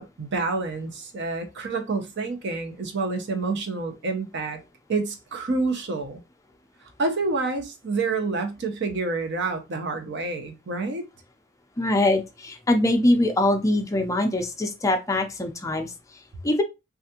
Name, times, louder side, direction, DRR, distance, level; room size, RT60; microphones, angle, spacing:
voice 1, 0.0-4.6 4.9-6.2 7.0-11.0, right 3 dB, 55° right, 0.7 m, -28 dB
voice 2, 11.8-15.9 16.4-16.6, left 1 dB, 15° left, 0.4 m, -23 dB
3.4 x 2.4 x 2.8 m
head